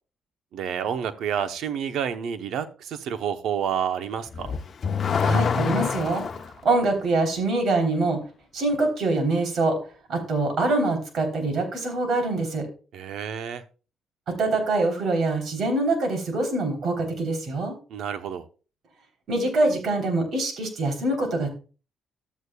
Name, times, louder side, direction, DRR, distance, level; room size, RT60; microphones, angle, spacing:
voice 1, 0.5-4.5 12.9-13.6 17.9-18.4, right 8 dB, 80° right, 10 dB, 0.8 m, -29 dB
Car / Accelerating revving vroom, 4.3-6.5, left 5 dB, 50° left, 0.8 m, -25 dB
voice 2, 5.2-6.2 6.6-8.2 8.5-9.8 10.1-12.7 14.3-17.7 19.3-21.5, right 2 dB, 60° right, 4 dB, 3.5 m, -24 dB
13.0 x 8.2 x 2.3 m, 0.36 s
cardioid pair, 90°, 0 cm